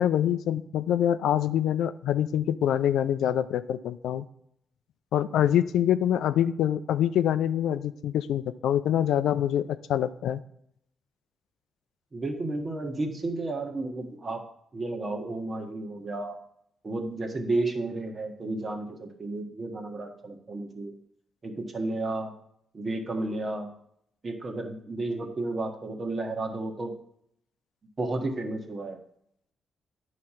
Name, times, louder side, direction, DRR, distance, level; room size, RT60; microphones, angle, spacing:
voice 1, 0.0-4.2 5.1-10.4, left 10 dB, 85° left, 12 dB, 0.4 m, -25 dB
voice 2, 12.1-14.4 14.7-16.4 16.8-20.9 21.4-22.3 22.7-23.7 24.2-26.9 28.0-29.0, right 2 dB, 40° right, 3 dB, 1.4 m, -32 dB
9.2 x 3.2 x 5.7 m, 0.71 s
cardioid pair, 65°, 0 cm